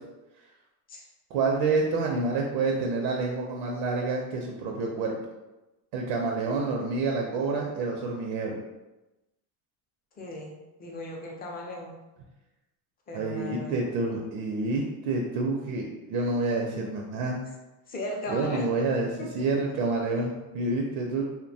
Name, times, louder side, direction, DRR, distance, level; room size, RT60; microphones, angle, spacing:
voice 1, 1.3-5.2 5.9-8.6 13.1-17.4 18.3-19.1 19.3-21.2, right 3 dB, 80° right, 1 dB, 0.6 m, -28 dB
voice 2, 10.2-10.5 10.8-11.9 13.1-13.8 17.9-18.6 19.2-19.3, left 1 dB, 20° left, 0 dB, 0.4 m, -36 dB
2.7 x 2.2 x 2.6 m, 1.0 s
cardioid pair, 125°, 46 cm